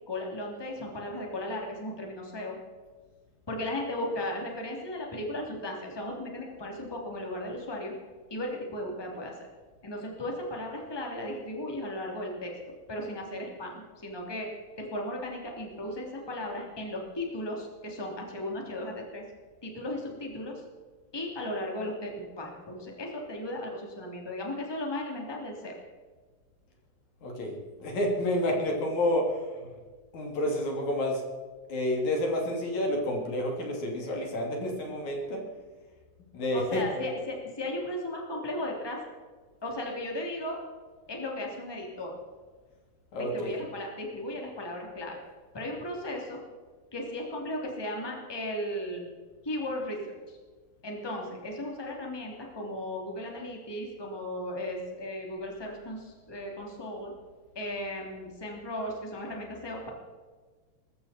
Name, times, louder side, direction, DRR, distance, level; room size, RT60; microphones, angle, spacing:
voice 1, 0.1-2.6 3.5-7.9 8.3-9.3 9.8-12.6 12.9-14.5 14.8-19.2 19.6-20.6 21.1-25.8 36.5-39.0 39.6-40.6 41.1-42.1 43.1-45.2 45.5-46.4 46.9-49.1 49.4-50.4 50.8-57.1 57.5-59.9, left 1 dB, 10° left, 0 dB, 2.7 m, -36 dB
voice 2, 27.2-29.7 30.1-31.2 31.7-35.4 36.3-37.2 43.1-43.6, left 1 dB, 65° left, 1 dB, 4.0 m, -29 dB
20.5 x 14.5 x 4.4 m, 1.4 s
omnidirectional pair, 3.7 m